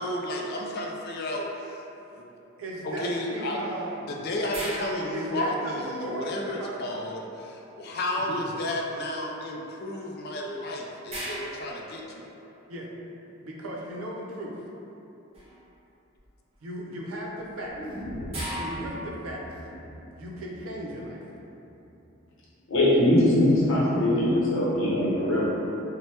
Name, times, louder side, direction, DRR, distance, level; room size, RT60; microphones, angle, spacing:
voice 1, 0.0-1.8 2.1-2.3 2.8-3.6 4.0-12.2, left 1 dB, 50° left, 0 dB, 0.3 m, -32 dB
voice 2, 2.6-3.9 4.6-4.7 5.1-5.7 6.0-6.8 8.2-8.4 12.7-12.9 13.3-14.6 16.6-18.0 18.5-19.6 20.2-21.2, right 1 dB, 80° right, -3 dB, 0.5 m, -36 dB
sound 1, 4.5-6.1 10.2-10.3 11.1-12.7 15.3-15.7 16.2-16.6 17.4-19.4, right 1 dB, 30° right, 0.6 m, -38 dB
sound 2, 17.7-21.7 22.0-22.1, equal, 15° left, 1.1 m, -40 dB
voice 3, 22.7-25.4, left 1 dB, 70° left, -7 dB, 0.8 m, -21 dB
2.8 x 2.1 x 3.2 m, 3.0 s
head